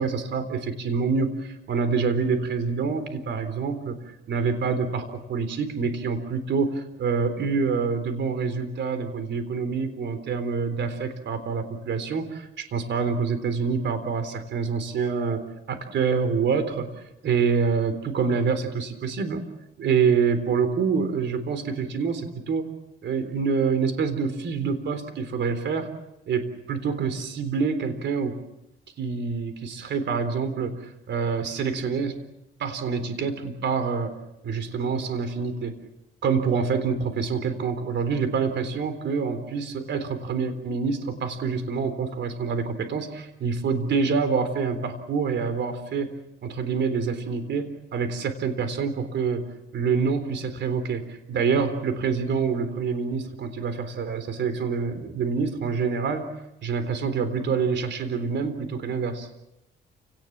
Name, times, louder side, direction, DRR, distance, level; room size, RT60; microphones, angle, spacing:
voice 1, 0.0-4.0 4.3-16.9 17.2-19.5 19.8-22.7 23.0-25.9 26.3-28.3 29.0-32.2 32.6-34.1 34.4-35.7 36.2-46.1 46.4-49.4 49.7-59.3, right 5 dB, 65° right, 10 dB, 3.8 m, -26 dB
29.5 x 19.0 x 7.5 m, 0.89 s
cardioid pair, 90°, 20 cm